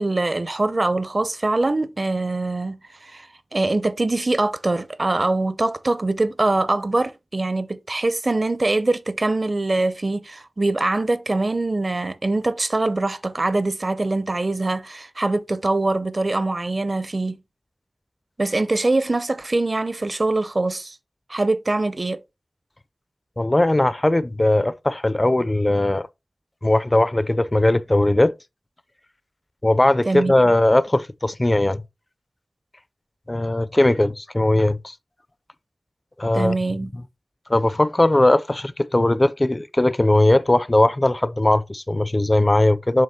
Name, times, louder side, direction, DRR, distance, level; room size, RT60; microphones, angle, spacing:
voice 1, 0.0-17.4 18.4-21.0 21.3-22.2 30.1-30.3 36.3-36.9, right 2 dB, 45° right, 0.6 m, -23 dB
voice 2, 23.4-26.1 26.6-28.3 29.6-31.8 33.3-34.9 36.2-36.6 37.5-43.0, left 1 dB, 25° left, 0.4 m, -19 dB
7.5 x 3.0 x 5.7 m
wide cardioid pair, 80°, 0 cm